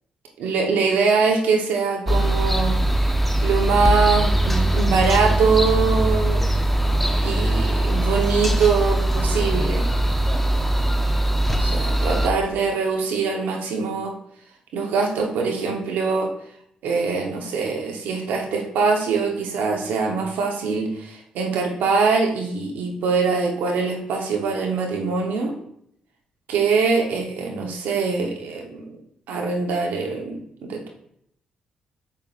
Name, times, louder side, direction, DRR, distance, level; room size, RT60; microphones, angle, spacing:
voice 1, 0.4-2.8 3.4-6.5 7.2-9.9 11.5-14.2 14.7-16.3 16.8-25.5 26.5-28.9 29.3-30.9, right 4 dB, 80° right, 2 dB, 1.0 m, -23 dB
sound 1, 2.1-12.3, right 1 dB, 5° left, 0.7 m, -21 dB
7.3 x 5.4 x 2.5 m, 0.72 s
supercardioid pair, 55°, 3 cm